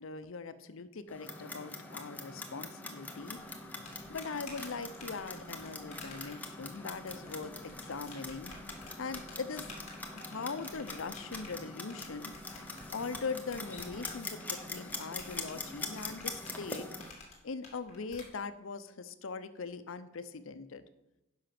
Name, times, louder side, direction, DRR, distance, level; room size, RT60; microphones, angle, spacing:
voice 1, 0.0-3.4 4.1-8.5 9.0-9.7 10.1-12.3 12.9-16.9 17.4-20.8, left 4 dB, 75° left, 12 dB, 0.6 m, -41 dB
Clock, 1.1-17.1, left 2 dB, 10° left, 0.8 m, -43 dB
sound 1, 3.2-18.2, left 3 dB, 30° left, 2.4 m, -52 dB
10.0 x 5.8 x 5.9 m, 0.96 s
head